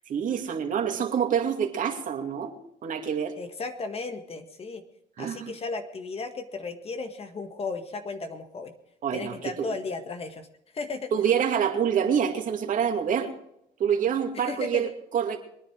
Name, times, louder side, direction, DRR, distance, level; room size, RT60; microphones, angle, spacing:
voice 1, 0.1-2.5 2.8-3.4 5.2-5.5 9.0-9.7 11.1-13.3 13.8-15.4, right 8 dB, 50° right, 4 dB, 2.5 m, -26 dB
voice 2, 3.4-4.8 5.2-8.7 9.1-10.5 10.7-11.1 14.3-14.9, left 4 dB, 35° left, 7 dB, 1.7 m, -35 dB
22.5 x 10.0 x 4.8 m, 0.76 s
cardioid pair, 110°, 17 cm